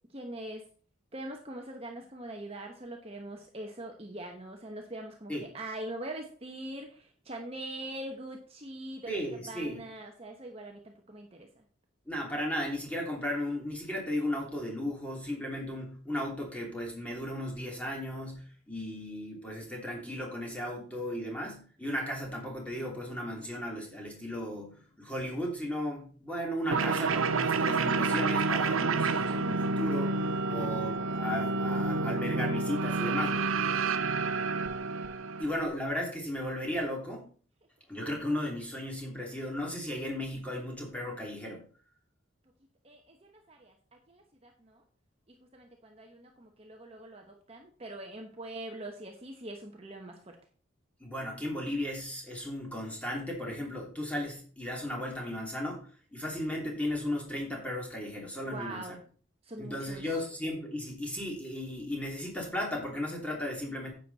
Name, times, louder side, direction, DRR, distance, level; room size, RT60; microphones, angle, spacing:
voice 1, 0.1-0.6 1.1-11.6 35.2-35.4 42.8-44.8 45.5-50.4 58.5-59.0 59.4-60.2, right 1 dB, 30° right, 2 dB, 1.0 m, -43 dB
voice 2, 9.1-9.8 12.1-33.5 35.4-37.3 37.9-41.6 51.0-55.9 56.1-59.0 59.6-63.9, left 1 dB, 5° left, -1 dB, 2.9 m, -35 dB
sound 1, 26.7-35.7, right 3 dB, 85° right, 0.8 m, -29 dB
10.0 x 7.9 x 4.1 m, 0.43 s
head